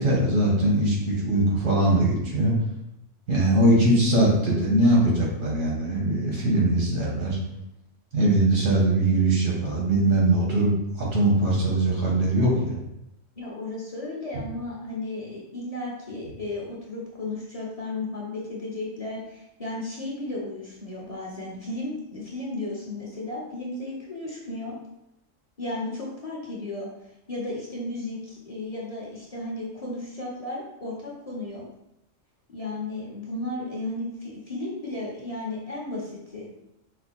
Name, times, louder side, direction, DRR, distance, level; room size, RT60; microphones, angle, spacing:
voice 1, 0.0-2.5 3.3-7.4 8.1-10.7 11.0-12.8, right 1 dB, 80° right, -3 dB, 1.8 m, -21 dB
voice 2, 13.4-24.7 25.6-26.9 27.3-31.6 32.5-36.5, left 2 dB, 30° left, -4 dB, 1.0 m, -34 dB
5.2 x 2.2 x 4.2 m, 0.84 s
omnidirectional pair, 1.3 m